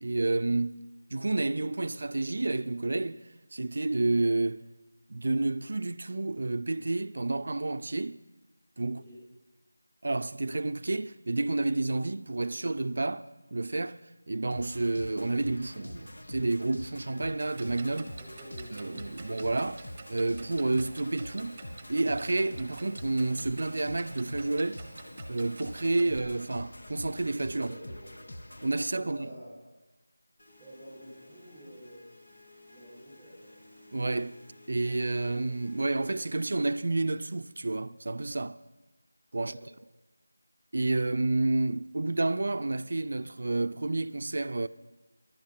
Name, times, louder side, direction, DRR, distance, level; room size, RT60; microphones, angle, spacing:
voice 1, 0.0-3.2 3.5-4.7 5.1-8.2 8.8-9.0 10.0-14.0 14.3-18.1 18.7-19.8 20.1-21.6 21.9-24.8 25.3-27.7 28.6-29.3 33.9-34.4 34.7-38.6 39.3-39.6 40.7-44.7, right 2 dB, 55° right, 0.5 m, -30 dB
voice 2, 8.9-9.2 18.2-19.1 27.5-28.3 28.8-29.6 30.6-32.1 32.7-33.5 39.4-39.7, equal, 5° right, 6.4 m, -49 dB
sound 1, 14.5-28.7, left 1 dB, 65° left, 1.7 m, -45 dB
Clock, 17.4-26.2, right 4 dB, 20° right, 1.4 m, -49 dB
sound 2, 30.4-36.5, left 2 dB, 50° left, 2.9 m, -55 dB
16.5 x 12.0 x 5.8 m
figure-of-eight pair, 170°, 0 cm